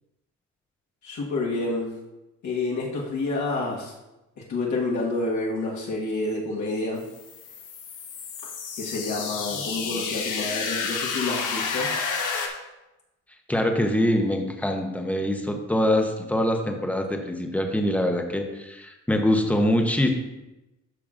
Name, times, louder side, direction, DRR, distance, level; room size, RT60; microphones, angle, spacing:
voice 1, 1.0-1.9 2.4-3.9 4.4-7.0 8.4-8.5 8.8-11.9, left 2 dB, 70° left, -5 dB, 1.6 m, -28 dB
sound 1, 7.0-12.5, left 5 dB, 90° left, 1.3 m, -30 dB
voice 2, 13.5-20.1, left 1 dB, 5° left, 3 dB, 0.7 m, -24 dB
12.0 x 5.9 x 2.5 m, 0.98 s
cardioid pair, 155°, 31 cm